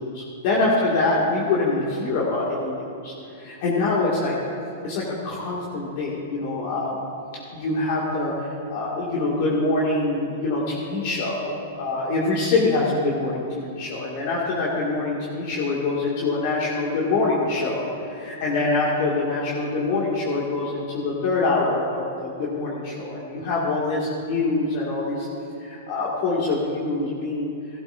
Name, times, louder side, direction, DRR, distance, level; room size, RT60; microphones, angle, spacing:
voice 1, 0.0-4.4 4.8-7.0 7.5-25.3 25.6-27.5, left 3 dB, 55° left, -5 dB, 2.1 m, -25 dB
16.0 x 13.0 x 2.6 m, 2.6 s
hypercardioid pair, 125°, 0 cm